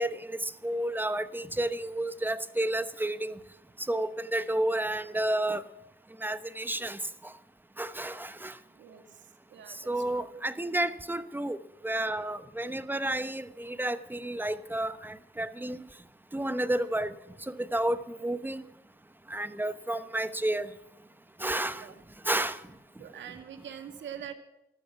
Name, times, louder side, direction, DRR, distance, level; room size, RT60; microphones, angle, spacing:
voice 1, 0.0-3.3 3.9-5.6 6.2-7.0 7.8-8.5 9.9-11.6 11.8-15.8 16.3-17.1 17.6-18.6 19.3-20.7 21.4-21.8 22.2-22.6, right 1 dB, 10° right, 13 dB, 1.0 m, -31 dB
voice 2, 8.8-10.5 21.7-22.0 23.0-24.3, right 9 dB, 70° right, 7 dB, 2.2 m, -45 dB
14.0 x 13.0 x 6.0 m, 0.92 s
cardioid pair, 90°, 20 cm